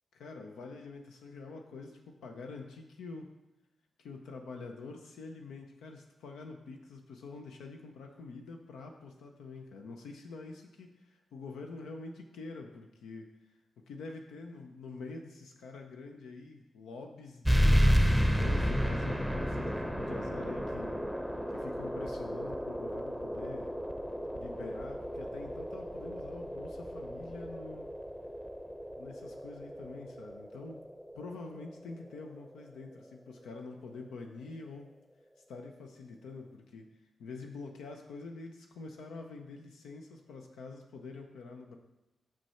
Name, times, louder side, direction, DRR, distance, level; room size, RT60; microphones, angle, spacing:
voice 1, 0.1-3.3 4.0-13.6 13.9-17.8 18.1-21.0 21.3-23.7 24.3-27.9 28.9-30.8 31.1-34.9 35.5-36.9 37.2-41.8, left 3 dB, 80° left, 3 dB, 0.5 m, -46 dB
sound 1, 17.4-32.5, equal, ahead, 0.8 m, -32 dB
6.0 x 5.7 x 4.3 m, 0.97 s
supercardioid pair, 40°, 0 cm